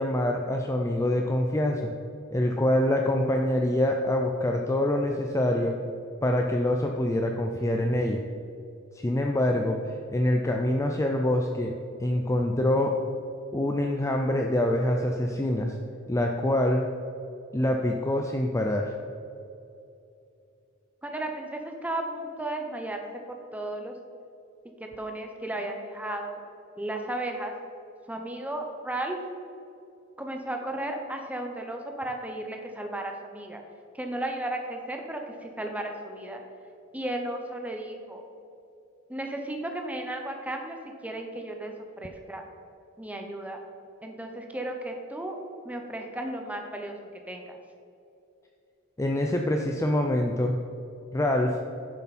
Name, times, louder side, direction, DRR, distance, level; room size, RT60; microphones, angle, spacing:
voice 1, 0.0-1.9 2.3-5.7 6.2-8.2 9.0-11.7 12.0-13.0 13.5-15.8 16.1-16.8 17.5-18.9 49.0-50.6 51.1-51.6, left 1 dB, 15° left, 2 dB, 0.5 m, -25 dB
voice 2, 21.0-23.9 24.8-26.4 26.8-27.5 28.1-29.2 30.2-33.6 33.9-36.4 36.9-38.2 39.1-40.8 41.0-42.4 43.0-43.6 44.0-45.4 45.6-47.6, right 1 dB, 5° right, 3 dB, 0.9 m, -34 dB
10.0 x 7.1 x 4.2 m, 2.7 s
head